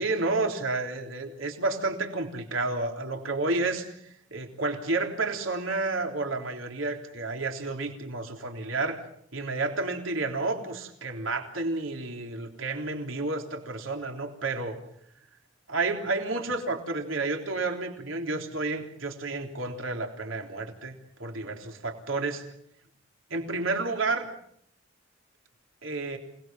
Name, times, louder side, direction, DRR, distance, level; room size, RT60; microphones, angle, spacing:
voice 1, 0.0-9.0 9.3-14.8 15.7-22.4 23.3-24.3 25.8-26.2, right 3 dB, 90° right, 3 dB, 3.6 m, -31 dB
28.5 x 20.0 x 7.6 m, 0.68 s
head